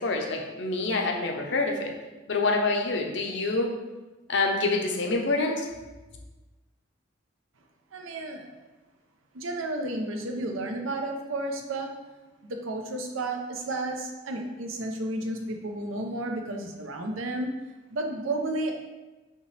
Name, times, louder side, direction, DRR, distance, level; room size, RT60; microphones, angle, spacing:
voice 1, 0.0-1.9 2.3-3.7 4.3-5.7, left 3 dB, 60° left, 2 dB, 0.6 m, -26 dB
voice 2, 7.9-8.7 9.3-11.9 12.4-17.5 17.9-18.7, right 2 dB, 85° right, 3 dB, 0.6 m, -32 dB
5.5 x 3.0 x 3.2 m, 1.2 s
head